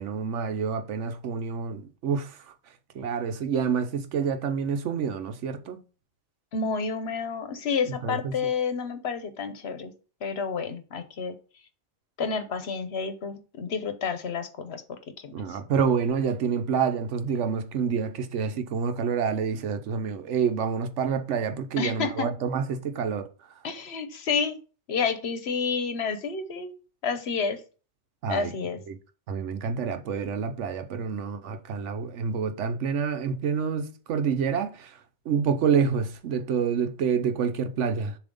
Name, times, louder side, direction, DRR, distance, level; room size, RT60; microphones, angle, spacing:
voice 1, 0.0-2.4 2.9-5.8 7.9-8.3 15.3-23.3 28.2-28.5 28.9-29.0 29.3-35.0 35.3-38.2, right 6 dB, 85° right, 1.1 m, -28 dB
voice 2, 6.5-9.9 10.2-11.4 12.2-14.8 15.2-15.6 21.8-22.3 23.6-24.6 24.9-26.7 27.0-27.6 28.3-28.8, left 5 dB, 65° left, 1.1 m, -30 dB
7.0 x 2.8 x 5.3 m
omnidirectional pair, 1.2 m